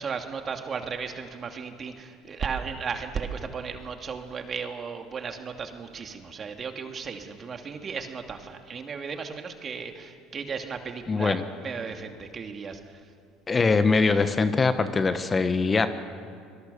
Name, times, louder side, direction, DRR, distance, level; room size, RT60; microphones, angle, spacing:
voice 1, 0.0-13.0, right 5 dB, 35° right, 5 dB, 2.7 m, -35 dB
voice 2, 11.1-11.4 13.5-15.9, left 4 dB, 25° left, 10 dB, 1.4 m, -22 dB
25.5 x 21.5 x 7.1 m, 2.2 s
hypercardioid pair, 75°, 0 cm